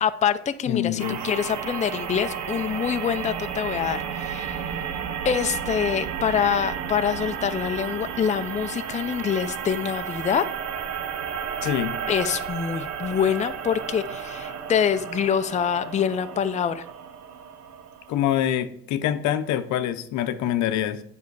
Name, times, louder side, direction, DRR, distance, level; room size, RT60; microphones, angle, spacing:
voice 1, 0.0-4.6 5.2-10.4 12.1-16.8, left 8 dB, 25° left, 10 dB, 0.5 m, -25 dB
voice 2, 0.7-1.2 11.6-12.0 18.1-21.0, left 11 dB, 70° left, 11 dB, 0.7 m, -25 dB
sound 1, 1.0-18.5, right 7 dB, 65° right, 0.9 m, -33 dB
8.3 x 5.4 x 4.7 m, 0.70 s
supercardioid pair, 80°, 30 cm